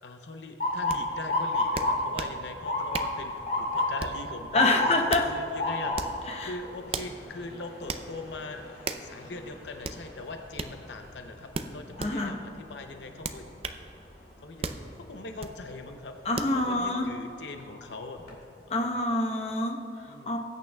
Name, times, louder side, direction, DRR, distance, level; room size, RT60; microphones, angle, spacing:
voice 1, 0.0-4.8 5.3-8.7 9.0-13.5 14.4-18.4 18.7-18.9 20.1-20.4, left 3 dB, 75° left, 5 dB, 0.7 m, -41 dB
Motor vehicle (road) / Siren, 0.6-12.5 12.9-13.4 14.2-14.5 16.3-16.6 17.1-17.2 17.6-18.3, left 2 dB, 60° left, 2.2 m, -32 dB
sound 1, 0.9-1.0 1.8-2.4 2.9-3.2 4.0-4.3 4.9-5.3 5.9-6.2 6.9-7.1 7.9-8.1 8.8-9.1 9.8-10.0 10.6-10.7 11.5-12.1 13.2-13.8 14.6-14.8 15.4-15.6 16.4-16.6, right 4 dB, 35° right, 0.5 m, -35 dB
voice 2, 4.5-5.3 6.3-6.5 12.0-12.4 16.2-17.1 18.7-20.4, left 2 dB, 35° left, 2 dB, 0.9 m, -27 dB
19.5 x 9.0 x 2.3 m, 2.9 s
head